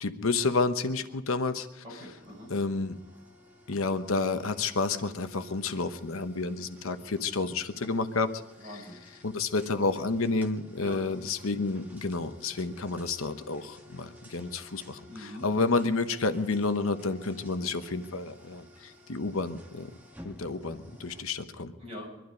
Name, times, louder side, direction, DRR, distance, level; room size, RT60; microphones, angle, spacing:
voice 1, 0.0-1.8 2.5-3.0 3.7-8.4 8.7-8.8 9.2-19.9 20.2-21.7, left 3 dB, 75° left, 9 dB, 1.0 m, -30 dB
voice 2, 1.8-2.5 8.6-9.0 10.8-11.0 15.1-15.4 21.8-22.1, left 1 dB, 25° right, -3 dB, 6.3 m, -43 dB
sound 1, 2.1-21.2, left 1 dB, 10° right, 1.8 m, -53 dB
22.5 x 12.5 x 5.2 m, 1.1 s
head